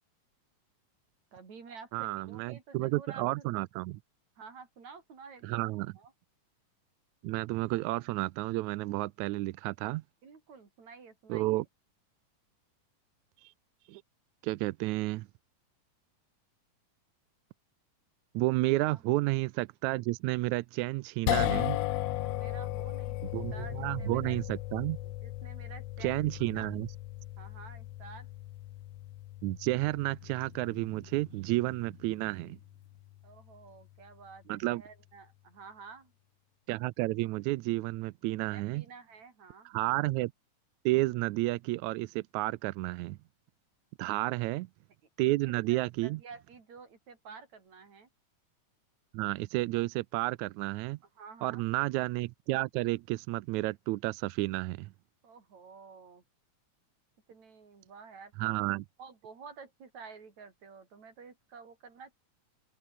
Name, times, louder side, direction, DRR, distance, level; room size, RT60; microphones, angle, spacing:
voice 1, 1.3-3.5 4.4-6.1 10.2-11.6 18.8-19.0 22.2-24.4 25.0-26.2 26.5-26.7 27.4-28.3 33.2-36.1 38.4-39.7 45.4-48.1 51.2-51.7 55.2-56.2 57.3-58.6 59.0-62.1, right 5 dB, 60° right, 5.5 m, -51 dB
voice 2, 1.9-4.0 5.4-5.9 7.2-10.0 11.3-11.7 13.4-13.5 13.9-14.0 14.4-15.3 18.3-21.8 23.3-25.0 26.0-26.9 29.4-32.6 34.5-34.8 36.7-38.8 39.7-40.3 40.9-43.2 44.0-44.7 45.2-46.2 49.1-51.0 51.4-54.9 58.4-58.9, right 19 dB, 80° right, 1.8 m, -31 dB
sound 1, 21.3-33.6, left 15 dB, 70° left, 1.7 m, -37 dB
open air
omnidirectional pair, 3.7 m